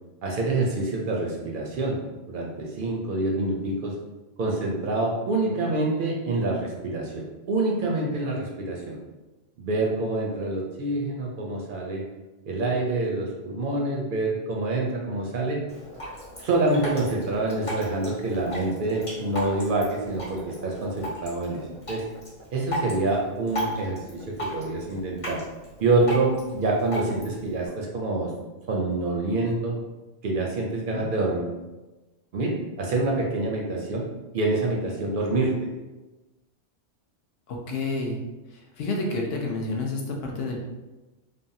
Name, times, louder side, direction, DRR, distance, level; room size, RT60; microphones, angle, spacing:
voice 1, 0.2-2.0 2.3-3.9 4.4-9.0 9.6-12.0 12.5-15.6 16.4-22.0 22.5-25.4 25.8-28.3 28.7-29.8 30.2-31.5 32.3-34.0 34.3-35.7, right 2 dB, 60° right, -1 dB, 0.6 m, -26 dB
Drip, 15.7-27.7, equal, 30° left, 1.0 m, -36 dB
voice 2, 37.5-38.2 38.5-40.6, left 2 dB, 65° left, 0 dB, 0.7 m, -30 dB
3.4 x 2.0 x 2.6 m, 1.1 s
omnidirectional pair, 1.2 m